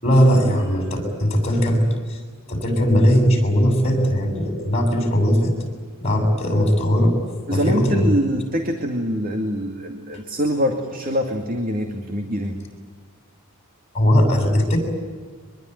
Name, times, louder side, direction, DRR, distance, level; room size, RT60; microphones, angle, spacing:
voice 1, 0.0-2.2 2.5-5.5 6.0-7.1 7.5-8.0 13.9-14.8, equal, 30° left, 4 dB, 7.4 m, -19 dB
voice 2, 7.5-12.6, equal, 40° right, 4 dB, 2.3 m, -24 dB
24.0 x 22.0 x 9.4 m, 1.5 s
head